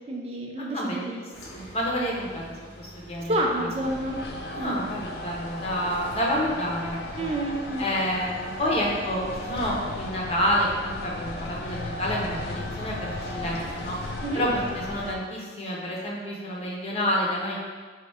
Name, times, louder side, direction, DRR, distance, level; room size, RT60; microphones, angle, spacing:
voice 1, 0.1-1.1 3.3-4.2 4.6-4.8 7.2-7.9 14.2-14.4, right 1 dB, 35° right, 1 dB, 0.4 m, -29 dB
voice 2, 0.6-1.2 1.5-2.4 2.8-3.7 4.5-7.3 7.8-14.0 14.3-17.7, equal, 35° left, -4 dB, 0.8 m, -29 dB
sound 1, 1.3-14.1, equal, 80° left, 1.0 m, -47 dB
sound 2, 3.8-15.2, left 2 dB, 55° left, 0.4 m, -36 dB
4.2 x 2.4 x 4.7 m, 1.5 s
head